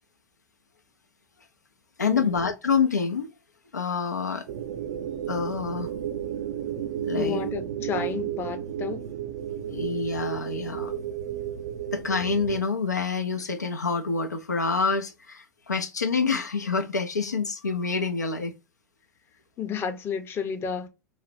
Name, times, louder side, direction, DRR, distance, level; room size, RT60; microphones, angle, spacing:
voice 1, 2.0-3.3 3.7-4.4 5.3-5.9 7.0-7.4 9.7-10.9 11.9-18.5, left 5 dB, 85° left, 0.4 m, -27 dB
sound 1, 4.5-12.6, right 10 dB, 55° right, 0.4 m, -33 dB
voice 2, 7.2-9.1 19.6-20.9, left 7 dB, 25° left, 0.6 m, -31 dB
3.1 x 2.0 x 2.5 m
figure-of-eight pair, 90°, 9 cm